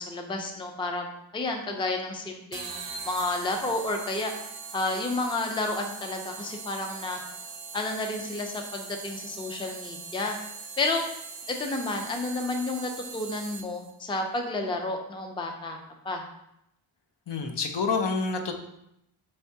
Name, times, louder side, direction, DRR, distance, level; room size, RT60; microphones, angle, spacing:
voice 1, 0.0-4.3 4.7-7.2 7.7-10.3 10.8-11.0 11.5-15.8 16.0-16.2, left 2 dB, 10° left, 4 dB, 0.4 m, -31 dB
sound 1, 2.5-13.9, right 5 dB, 65° right, 0.7 m, -41 dB
voice 2, 17.3-18.6, left 4 dB, 60° left, 5 dB, 0.6 m, -28 dB
4.4 x 3.4 x 2.7 m, 0.81 s
wide cardioid pair, 75°, 48 cm